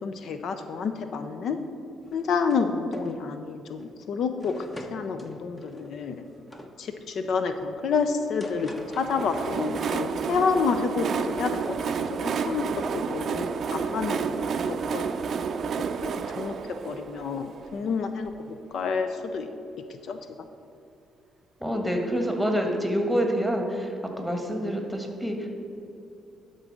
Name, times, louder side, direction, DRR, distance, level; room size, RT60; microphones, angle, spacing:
voice 1, 0.0-1.6 2.1-6.2 6.8-15.0 16.0-16.5 16.8-19.5 20.0-20.2, left 5 dB, 65° left, 8 dB, 0.5 m, -29 dB
sound 1, 2.0-2.7 2.9-3.2 3.8-3.9 4.4-6.8 8.0-9.5 9.8-10.5, left 1 dB, 20° left, 0.9 m, -46 dB
Train, 8.7-18.4, right 6 dB, 60° right, 0.4 m, -30 dB
voice 2, 21.6-25.5, equal, ahead, 2 dB, 1.5 m, -27 dB
11.5 x 3.9 x 6.2 m, 2.7 s
cardioid pair, 90°, 0 cm